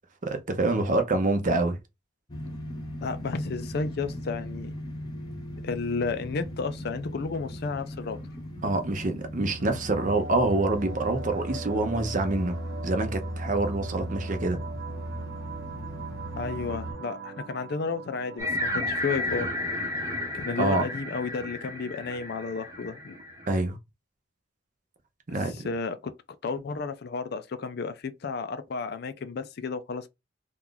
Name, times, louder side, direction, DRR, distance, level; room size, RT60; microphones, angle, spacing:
voice 1, 0.2-1.8 8.6-12.6 12.8-14.6 20.6-20.9 23.5-23.8 25.3-25.7, right 2 dB, 45° right, 0.7 m, -26 dB
sound 1, 2.3-16.9, equal, 25° left, 1.0 m, -37 dB
voice 2, 3.0-4.8 5.6-8.2 16.4-19.5 20.3-23.2 25.3-26.1 26.4-30.1, left 4 dB, 55° left, 0.4 m, -32 dB
sound 2, 10.0-20.9, right 5 dB, 80° right, 1.0 m, -43 dB
sound 3, 18.4-23.6, left 1 dB, 15° right, 0.9 m, -32 dB
2.9 x 2.4 x 3.7 m
head